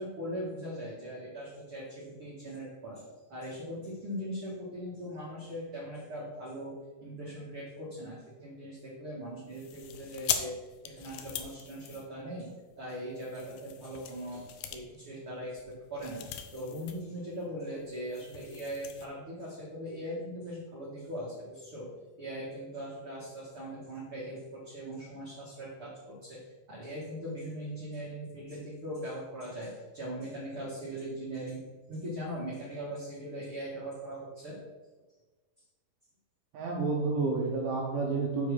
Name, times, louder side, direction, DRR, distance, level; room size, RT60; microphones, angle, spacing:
voice 1, 0.0-6.8 7.0-10.6 10.8-12.5 12.8-16.2 16.5-21.9 22.2-26.4 26.7-31.6 31.9-34.6, equal, 45° right, -7 dB, 2.0 m, -40 dB
sound 1, 9.5-12.6 13.1-17.1 17.3-17.5 17.8-19.1, left 9 dB, 90° left, 1.9 m, -40 dB
voice 2, 36.5-38.5, right 4 dB, 75° right, -2 dB, 2.3 m, -30 dB
7.2 x 4.6 x 6.3 m, 1.3 s
omnidirectional pair, 4.5 m